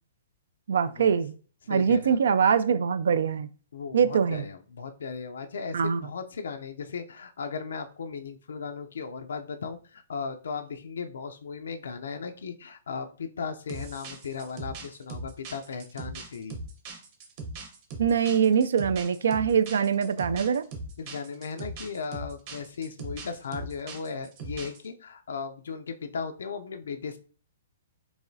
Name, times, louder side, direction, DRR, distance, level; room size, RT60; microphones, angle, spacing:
voice 1, 0.7-1.3 1.7-3.5 3.9-4.4 5.7-6.1 18.0-20.6, right 7 dB, 75° right, 0.3 m, -23 dB
voice 2, 1.6-2.2 3.7-16.6 21.0-27.2, left 5 dB, 85° left, 0.5 m, -37 dB
sound 1, 13.7-24.9, right 2 dB, 35° right, 0.9 m, -40 dB
4.7 x 3.1 x 2.7 m
hypercardioid pair, 160°, 0 cm